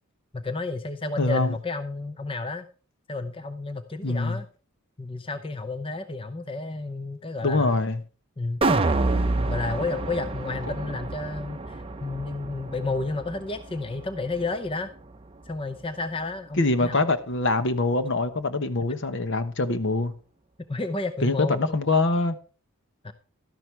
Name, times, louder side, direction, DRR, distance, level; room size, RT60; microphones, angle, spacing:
voice 1, 0.3-2.7 3.1-4.5 5.0-7.8 8.4-8.6 9.5-14.9 15.4-17.0 20.7-21.8 23.0-23.1, left 3 dB, 25° left, 0.6 m, -31 dB
voice 2, 1.2-1.6 4.0-4.4 7.4-8.0 16.6-20.1 21.2-22.4, left 2 dB, 55° left, 1.0 m, -24 dB
sound 1, 8.6-14.8 15.2-15.3, right 2 dB, 25° right, 0.7 m, -28 dB
12.5 x 10.5 x 3.3 m
head